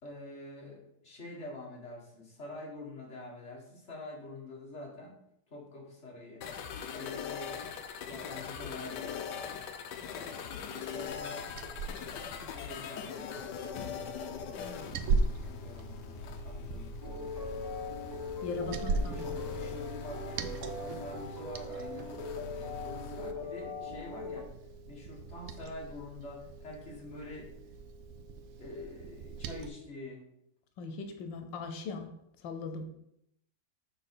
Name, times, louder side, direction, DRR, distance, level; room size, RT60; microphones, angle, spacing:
voice 1, 0.0-5.2 5.5-6.5 6.9-7.6 8.0-9.5 10.1-11.5 12.4-14.7 15.4-17.7 19.0-22.2 22.5-24.5 24.9-27.5 28.6-30.2, left 2 dB, 40° left, -2 dB, 2.1 m, -46 dB
sound 1, 6.4-23.3, left 6 dB, 75° left, 1.3 m, -42 dB
Liquid, 11.1-29.7, right 4 dB, 70° right, 0.9 m, -39 dB
sound 2, 17.0-24.4, left 3 dB, 20° right, 0.5 m, -41 dB
voice 2, 18.4-19.3 30.8-32.9, left 4 dB, 90° left, 6 dB, 1.5 m, -39 dB
6.6 x 4.0 x 6.0 m, 0.76 s
omnidirectional pair, 2.0 m